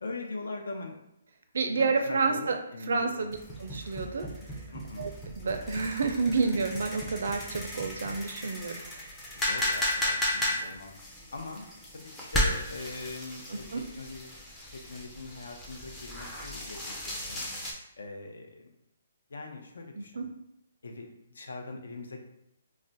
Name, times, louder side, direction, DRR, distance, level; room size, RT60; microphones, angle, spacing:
voice 1, 0.0-0.9 1.7-3.3 4.7-5.1 9.3-11.6 11.9-12.0 12.3-13.6 14.0-14.4 14.7-17.4 18.0-18.7 19.3-20.3 20.8-22.2, left 3 dB, 85° left, 3 dB, 0.6 m, -41 dB
voice 2, 1.5-2.6 2.9-4.3 5.0-8.8 13.7-13.8 20.0-20.3, right 4 dB, 65° right, 5 dB, 0.4 m, -29 dB
sound 1, 3.3-17.7, left 1 dB, 5° left, 0.4 m, -35 dB
2.4 x 2.1 x 3.9 m, 0.81 s
hypercardioid pair, 175°, 0 cm